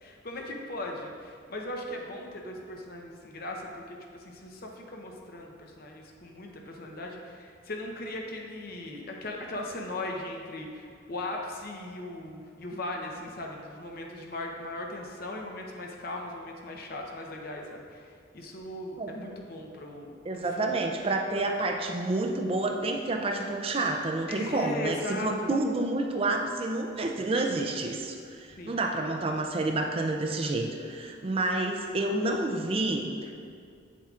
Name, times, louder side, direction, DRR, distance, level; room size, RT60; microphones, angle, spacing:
voice 1, 0.0-20.7 24.3-25.6 28.5-28.7, left 1 dB, 50° left, 1 dB, 0.8 m, -38 dB
voice 2, 20.3-33.3, right 2 dB, 30° right, 3 dB, 0.4 m, -29 dB
8.1 x 7.2 x 2.4 m, 2.3 s
head